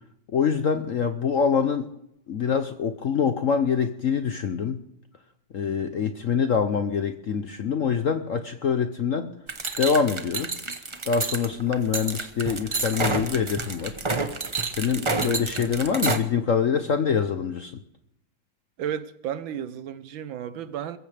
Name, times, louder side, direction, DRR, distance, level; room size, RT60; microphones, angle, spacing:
voice 1, 0.3-1.9 2.3-4.8 5.5-9.3 9.8-10.5 11.1-14.0 14.7-17.8, left 6 dB, 60° left, 0.8 m, -25 dB
sound 1, 9.5-16.2, right 3 dB, 35° right, 0.5 m, -29 dB
voice 2, 15.2-15.5 18.8-21.0, right 9 dB, 80° right, 1.7 m, -34 dB
22.0 x 15.0 x 3.4 m
omnidirectional pair, 2.2 m